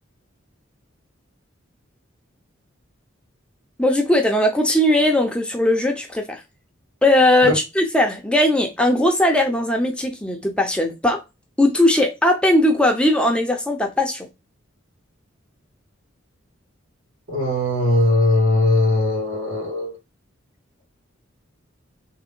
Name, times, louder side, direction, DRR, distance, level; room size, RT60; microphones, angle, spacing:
voice 1, 3.8-6.4 7.0-11.2 11.6-14.3, left 1 dB, 5° left, 0.6 m, -19 dB
voice 2, 17.3-19.9, left 1 dB, 90° right, 2.6 m, -19 dB
3.6 x 2.7 x 3.7 m
head